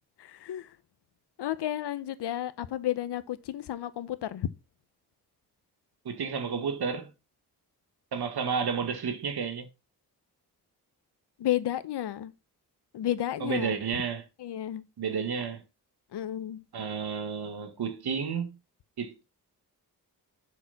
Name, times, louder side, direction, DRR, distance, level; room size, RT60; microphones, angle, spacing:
voice 1, 0.2-0.7 1.4-4.5 11.4-12.3 12.9-13.7 14.4-14.8 16.1-16.6, left 12 dB, 85° left, 0.8 m, -32 dB
voice 2, 6.0-7.1 8.1-9.7 13.4-14.2 15.0-15.6 16.7-18.5 19.0-19.2, right 6 dB, 75° right, 1.7 m, -31 dB
7.2 x 6.3 x 4.1 m
cardioid pair, 65°, 39 cm